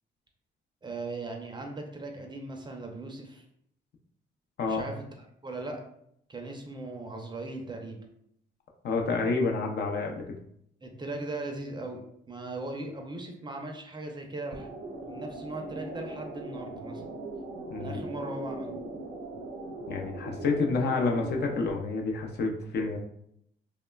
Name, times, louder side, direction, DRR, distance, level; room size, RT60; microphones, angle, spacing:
voice 1, 0.8-3.4 4.6-5.1 5.4-5.8 6.3-8.0 10.8-14.7 15.0-17.0 17.8-18.7, right 2 dB, 20° right, 2 dB, 0.4 m, -38 dB
voice 2, 8.8-10.2 17.7-18.0 19.9-23.0, left 4 dB, 55° left, 2 dB, 0.5 m, -29 dB
sound 1, 14.5-21.7, right 2 dB, 70° right, 0.6 m, -40 dB
3.0 x 2.1 x 2.2 m, 0.72 s
cardioid pair, 90°, 20 cm